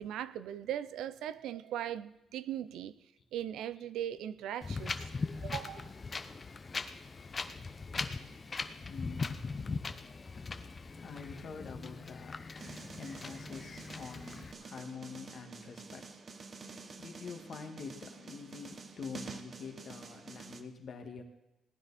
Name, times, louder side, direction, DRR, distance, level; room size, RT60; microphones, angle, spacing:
voice 1, 0.0-2.9 3.3-5.1 5.4-5.9, right 11 dB, 85° right, 14 dB, 0.5 m, -39 dB
Wind, 4.6-14.5, left 4 dB, 35° left, 0.8 m, -40 dB
voice 2, 8.9-9.7 11.0-16.0 16.5-16.6 17.0-21.2, left 5 dB, 60° left, 4 dB, 1.9 m, -46 dB
sound 1, 12.6-20.6, right 4 dB, 45° right, 1.1 m, -49 dB
18.0 x 9.8 x 4.2 m, 0.94 s
cardioid pair, 90°, 0 cm